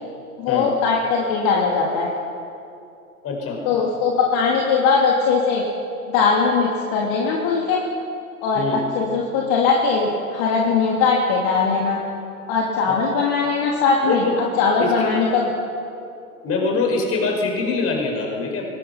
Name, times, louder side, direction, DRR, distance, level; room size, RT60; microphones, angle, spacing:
voice 1, 0.4-2.1 3.6-5.6 6.1-7.8 8.4-12.0 12.5-15.5, left 5 dB, 45° left, -2 dB, 3.1 m, -20 dB
voice 2, 3.2-3.6 8.5-8.8 12.9-13.0 14.0-14.4 14.8-15.1 16.4-18.6, left 4 dB, 30° left, 1 dB, 5.4 m, -23 dB
24.0 x 19.5 x 5.9 m, 2.6 s
hypercardioid pair, 105°, 47 cm